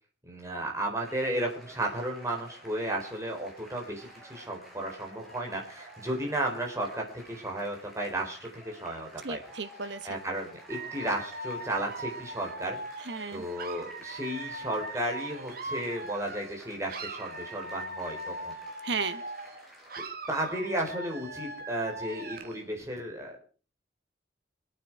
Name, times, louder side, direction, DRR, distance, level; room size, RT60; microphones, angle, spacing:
voice 1, 0.2-9.4 10.0-13.0 13.3-18.5 20.3-23.5, right 1 dB, 15° right, 0 dB, 4.1 m, -34 dB
sound 1, 1.0-19.9, right 1 dB, ahead, 4.9 m, -51 dB
voice 2, 9.2-10.2 13.1-13.5 18.8-19.2, right 4 dB, 70° right, 11 dB, 1.2 m, -34 dB
Dog / Alarm, 10.7-16.6 16.9-19.6 19.9-22.6, right 2 dB, 50° right, 1.7 m, -40 dB
24.0 x 9.1 x 4.7 m, 0.37 s
head